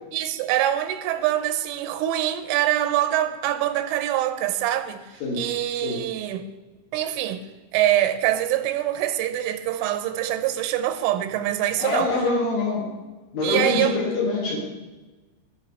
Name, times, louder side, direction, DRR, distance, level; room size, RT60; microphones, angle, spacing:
voice 1, 0.1-6.5 6.9-7.4 7.7-12.1 13.4-14.0, right 12 dB, 85° right, 3.3 m, -24 dB
voice 2, 11.8-12.9 13.3-14.6, left 3 dB, 60° left, 2.6 m, -25 dB
18.0 x 6.5 x 4.3 m
omnidirectional pair, 5.5 m